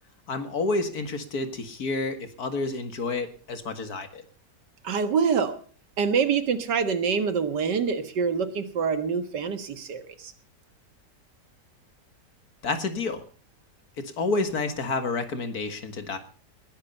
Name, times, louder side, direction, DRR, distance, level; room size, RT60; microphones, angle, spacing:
voice 1, 0.3-4.2 12.6-13.2 14.0-16.2, left 3 dB, 60° left, 9 dB, 2.3 m, -29 dB
voice 2, 4.8-5.6 6.0-10.3, right 6 dB, 90° right, 10 dB, 2.1 m, -26 dB
20.0 x 11.0 x 5.5 m, 0.40 s
omnidirectional pair, 1.8 m